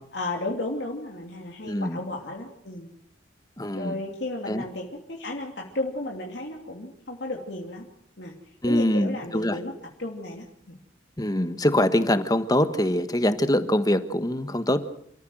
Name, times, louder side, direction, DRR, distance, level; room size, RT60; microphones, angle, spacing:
voice 1, 0.1-2.9 3.7-7.9 8.2-9.7 10.0-10.8, left 2 dB, 60° left, 0 dB, 2.8 m, -34 dB
voice 2, 1.6-2.0 3.6-3.9 4.5-4.6 8.6-9.6 11.2-14.8, left 1 dB, 20° left, 11 dB, 1.3 m, -23 dB
28.5 x 14.5 x 7.9 m, 0.72 s
head